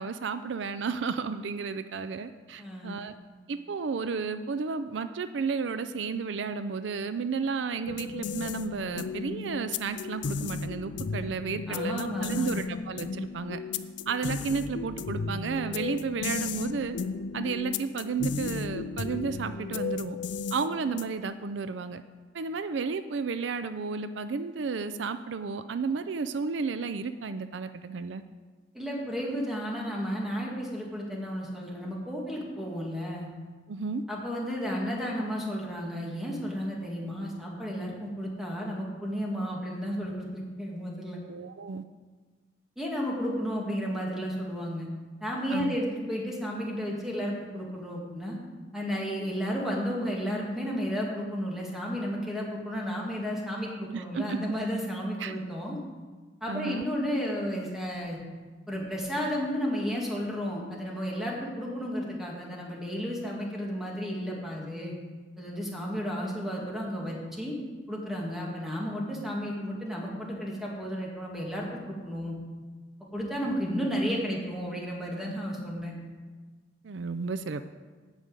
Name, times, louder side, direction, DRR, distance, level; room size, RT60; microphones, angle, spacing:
voice 1, 0.0-3.1 3.5-13.6 14.1-17.0 17.3-20.2 20.5-22.0 22.3-28.2 33.7-34.0 41.3-41.8 45.5-45.8 53.9-54.4 55.2-55.3 56.5-56.8 76.8-77.6, right 5 dB, 75° right, 11 dB, 0.5 m, -32 dB
voice 2, 2.6-3.0 11.7-12.6 28.7-33.3 34.1-41.2 42.8-44.9 45.2-48.4 48.7-55.8 56.4-58.2 58.7-64.9 65.4-67.6 67.9-72.3 73.1-75.9, equal, ahead, -3 dB, 2.2 m, -33 dB
sound 1, 7.9-21.3, left 5 dB, 70° left, 0.5 m, -35 dB
9.0 x 6.5 x 8.2 m, 1.4 s
head